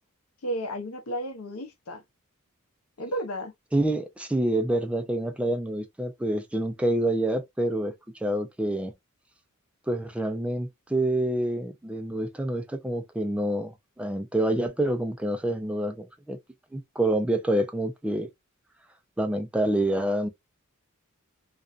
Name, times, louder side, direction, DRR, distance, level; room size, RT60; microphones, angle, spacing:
voice 1, 0.4-2.0 3.0-3.5, right 1 dB, 80° left, 0.7 m, -33 dB
voice 2, 3.7-8.9 9.9-13.7 14.0-16.4 16.7-18.3 19.2-20.3, right 1 dB, 5° right, 0.3 m, -27 dB
2.5 x 2.2 x 2.3 m
head